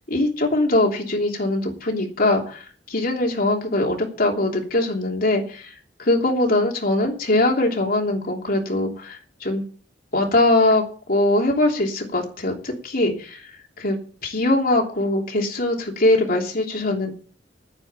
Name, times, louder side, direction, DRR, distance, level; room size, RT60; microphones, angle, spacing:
voice 1, 0.1-5.7 6.0-9.6 10.1-13.5 13.8-14.0 14.2-17.1, left 2 dB, 50° left, 1 dB, 3.2 m, -22 dB
9.7 x 9.6 x 7.0 m, 0.41 s
head